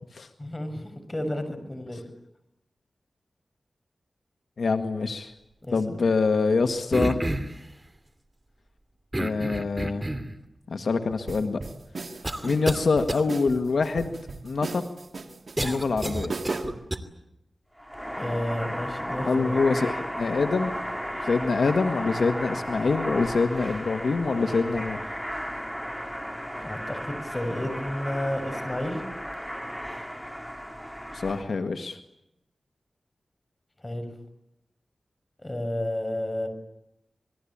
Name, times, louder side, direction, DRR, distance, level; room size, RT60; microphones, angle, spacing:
voice 1, 0.4-2.0 5.6-5.8 6.0-6.1 18.2-19.6 26.6-29.0 33.8-34.1 35.4-36.5, left 1 dB, 20° left, 7 dB, 6.8 m, -31 dB
voice 2, 4.6-5.3 5.7-7.2 9.2-10.0 10.7-11.6 12.4-14.2 14.4-14.8 15.6-16.4 19.2-20.7 21.2-25.1 31.1-32.0, left 4 dB, 80° left, 7 dB, 1.8 m, -25 dB
sound 1, 6.9-7.6 9.1-10.3 11.1-11.2 12.2-12.8 13.1-13.2 15.6-17.0, right 1 dB, 20° right, 2.7 m, -29 dB
sound 2, 11.3-16.9, right 3 dB, 65° right, 2.8 m, -36 dB
sound 3, 17.8-31.4, equal, ahead, 3.2 m, -34 dB
27.5 x 21.5 x 8.8 m, 0.85 s
wide cardioid pair, 85°, 0 cm